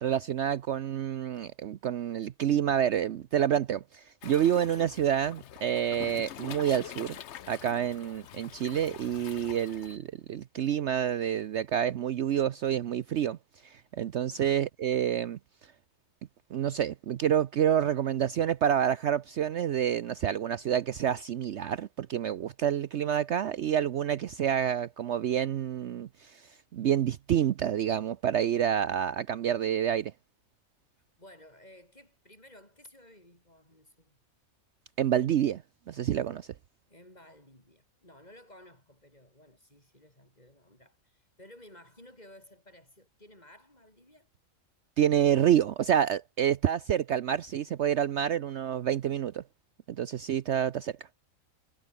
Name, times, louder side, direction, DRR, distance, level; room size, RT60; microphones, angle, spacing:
voice 1, 0.0-7.2 7.5-13.4 13.6-15.4 16.5-30.1 35.0-35.6 35.9-36.5 45.0-49.4 49.9-50.9, right 9 dB, 60° right, 0.9 m, -28 dB
Waves surf, 4.2-10.0, left 10 dB, 60° left, 1.0 m, -45 dB
voice 2, 14.3-14.7 31.2-34.2 36.9-44.3, left 1 dB, 30° left, 7.1 m, -55 dB
omnidirectional pair, 1.4 m